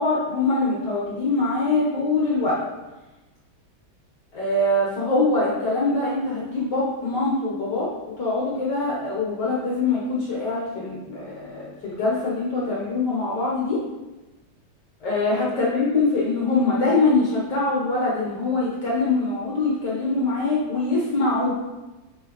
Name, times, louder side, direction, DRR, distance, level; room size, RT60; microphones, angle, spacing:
voice 1, 0.0-2.6 4.3-7.9 8.2-13.8 15.0-21.5, left 3 dB, 60° left, -6 dB, 1.9 m, -23 dB
6.8 x 5.8 x 3.1 m, 1.1 s
omnidirectional pair, 2.1 m